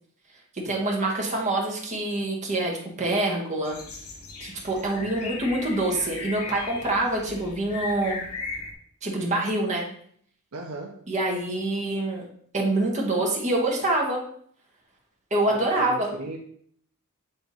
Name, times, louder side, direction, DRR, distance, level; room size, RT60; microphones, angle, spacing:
voice 1, 0.5-3.8 4.4-8.2 9.0-9.9 11.1-12.3 12.5-14.2 15.3-16.1, right 2 dB, 35° right, -2 dB, 1.4 m, -26 dB
sound 1, 3.7-8.7, left 4 dB, 70° left, 1.2 m, -37 dB
voice 2, 10.5-11.0 15.5-16.4, right 2 dB, 70° right, 1 dB, 0.8 m, -36 dB
6.6 x 3.5 x 4.1 m, 0.63 s
head